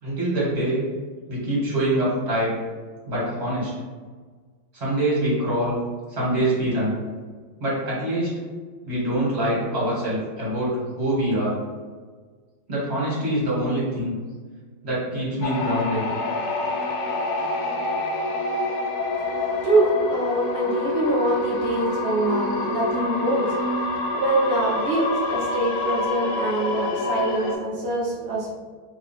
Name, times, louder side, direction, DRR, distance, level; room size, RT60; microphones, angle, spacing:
voice 1, 0.0-0.8 1.3-2.6 3.1-3.7 4.7-5.8 6.1-6.9 7.6-8.4 8.9-11.6 12.7-14.2 14.8-16.1, right 1 dB, 35° right, -7 dB, 1.7 m, -24 dB
Light terrors, 15.4-27.6, left 2 dB, 70° left, 0.9 m, -26 dB
voice 2, 19.6-23.5 24.1-28.6, right 2 dB, 90° right, -4 dB, 0.5 m, -24 dB
3.3 x 2.7 x 4.1 m, 1.5 s
omnidirectional pair, 2.2 m